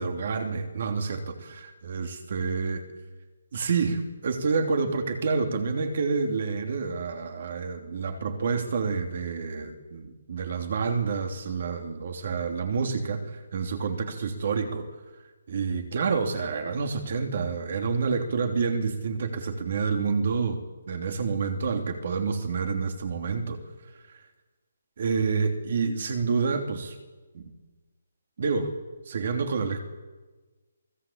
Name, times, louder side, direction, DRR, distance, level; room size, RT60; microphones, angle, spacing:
voice 1, 0.0-2.8 3.5-14.9 15.5-23.6 25.0-26.9 27.3-27.4 28.4-28.7 29.1-29.8, right 5 dB, 40° right, 6 dB, 3.0 m, -28 dB
28.0 x 20.0 x 8.7 m, 1.3 s
hypercardioid pair, 180°, 0 cm